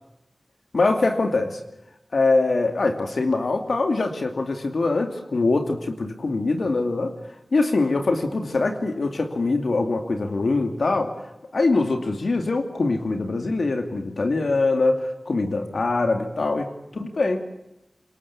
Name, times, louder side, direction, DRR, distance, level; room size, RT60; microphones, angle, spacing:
voice 1, 0.7-1.6 2.1-7.2 7.5-11.1 11.5-17.4, left 3 dB, 85° left, 5 dB, 2.4 m, -23 dB
26.5 x 23.0 x 8.6 m, 0.91 s
wide cardioid pair, 50°, 0 cm